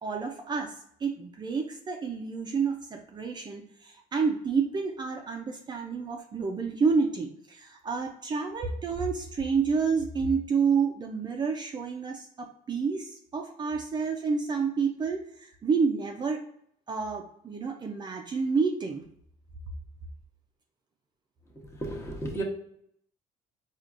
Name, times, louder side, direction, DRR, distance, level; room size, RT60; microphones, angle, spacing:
voice 1, 0.0-0.7 1.0-16.4 16.9-19.0, right 5 dB, 30° right, 2 dB, 0.5 m, -29 dB
voice 2, 21.8-22.4, right 1 dB, 20° left, 0 dB, 0.9 m, -33 dB
4.5 x 2.4 x 2.4 m, 0.68 s
cardioid pair, 110°, 15 cm